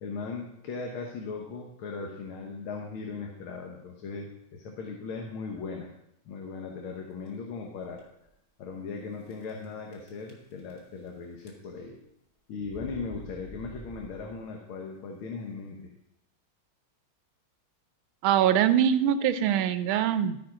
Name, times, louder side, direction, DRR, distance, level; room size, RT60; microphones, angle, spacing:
voice 1, 0.0-5.9 6.3-8.0 8.6-12.0 12.5-15.9, left 4 dB, 85° left, 2 dB, 1.9 m, -38 dB
sound 1, 6.8-7.3 7.9-8.0 8.3-8.4 9.3-9.7 9.9-11.1 11.4-11.9 12.6-14.5, equal, 35° left, 1.6 m, -48 dB
voice 2, 18.2-20.4, right 10 dB, 85° right, 12 dB, 1.4 m, -23 dB
13.0 x 4.9 x 4.9 m, 0.79 s
omnidirectional pair, 2.2 m